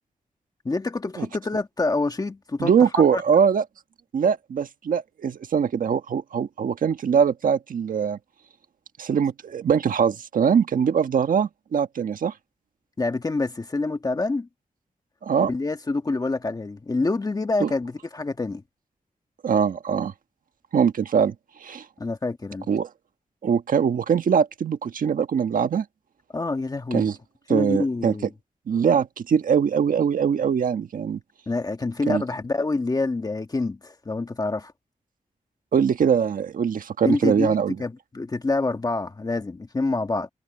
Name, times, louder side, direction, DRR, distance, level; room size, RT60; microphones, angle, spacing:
voice 1, 0.6-3.2 13.0-14.5 15.5-18.6 22.0-22.7 26.3-27.1 27.5-28.3 31.5-34.7 37.0-40.3, left 3 dB, 30° left, 1.5 m, -27 dB
voice 2, 2.6-3.6 4.1-8.2 9.0-12.3 15.2-15.5 17.6-17.7 19.4-20.1 20.7-21.3 21.6-21.8 22.7-22.9 23.4-25.8 26.9-27.2 27.5-28.1 28.7-31.2 32.1-32.2 35.7-37.8, right 7 dB, 85° right, 1.4 m, -22 dB
wide cardioid pair, 140°, 14 cm